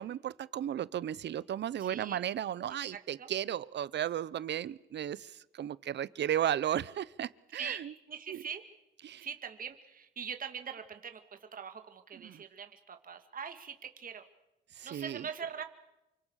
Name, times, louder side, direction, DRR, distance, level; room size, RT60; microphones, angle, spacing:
voice 1, 0.0-7.9 8.3-8.4 9.0-9.3 12.1-12.4 14.7-15.3, right 10 dB, 60° right, 19 dB, 1.0 m, -35 dB
voice 2, 1.8-2.2 2.9-3.3 7.5-7.8 8.1-8.6 9.2-11.2 11.5-14.2 14.8-15.6, right 7 dB, 45° right, 6 dB, 2.5 m, -42 dB
29.0 x 25.5 x 6.6 m, 0.96 s
cardioid pair, 90°, 20 cm